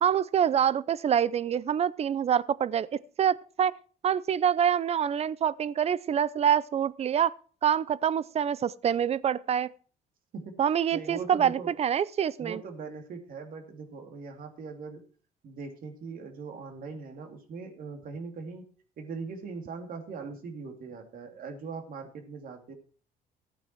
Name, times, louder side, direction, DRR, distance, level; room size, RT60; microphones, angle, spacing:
voice 1, 0.0-3.7 4.0-7.3 7.6-9.7 10.6-12.6, right 8 dB, 40° right, 0.6 m, -26 dB
voice 2, 10.3-11.8 12.4-15.0 15.4-18.6 19.0-22.7, right 4 dB, 55° right, 2.9 m, -40 dB
15.0 x 9.0 x 4.6 m
cardioid pair, 110°, 17 cm